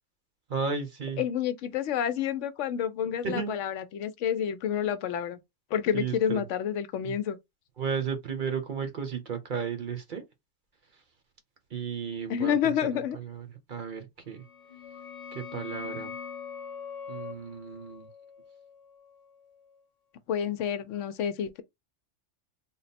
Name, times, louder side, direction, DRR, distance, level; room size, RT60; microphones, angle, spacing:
voice 1, 0.5-1.2 3.2-3.6 5.9-6.4 7.0-7.2 7.8-10.2 11.7-14.4 15.3-16.1 17.1-18.1, right 6 dB, 45° right, 0.9 m, -34 dB
voice 2, 1.2-5.4 5.7-7.4 12.3-13.2 20.3-21.6, left 9 dB, 75° left, 0.9 m, -29 dB
sound 1, 14.3-19.8, left 6 dB, 40° left, 0.6 m, -43 dB
3.5 x 2.0 x 4.1 m
omnidirectional pair, 1.3 m